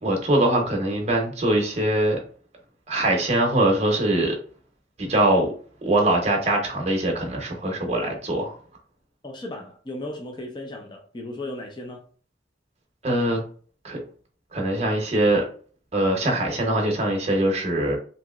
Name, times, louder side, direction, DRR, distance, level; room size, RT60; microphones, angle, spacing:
voice 1, 0.0-2.2 2.9-4.4 5.0-5.5 5.8-8.6 13.0-13.4 13.8-14.0 14.5-15.4 15.9-18.0, right 1 dB, 35° right, 0.7 m, -22 dB
voice 2, 9.2-12.0, left 1 dB, 25° left, 0.4 m, -35 dB
2.9 x 2.8 x 2.3 m
head